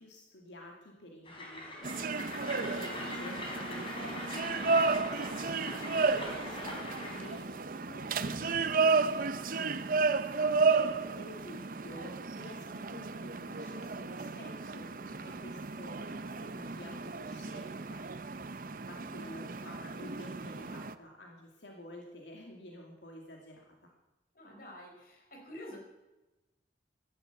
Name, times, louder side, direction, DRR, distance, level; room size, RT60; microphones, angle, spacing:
voice 1, 0.0-14.9 15.2-23.9, left 1 dB, 85° left, 0 dB, 2.4 m, -50 dB
Train, 1.2-7.3, left 1 dB, 30° left, 3.8 m, -42 dB
sound 1, 1.8-20.9, right 4 dB, 50° right, 0.7 m, -33 dB
voice 2, 14.9-15.4 24.3-25.8, left 1 dB, 50° left, 1 dB, 4.8 m, -49 dB
13.0 x 12.5 x 8.2 m, 1.1 s
head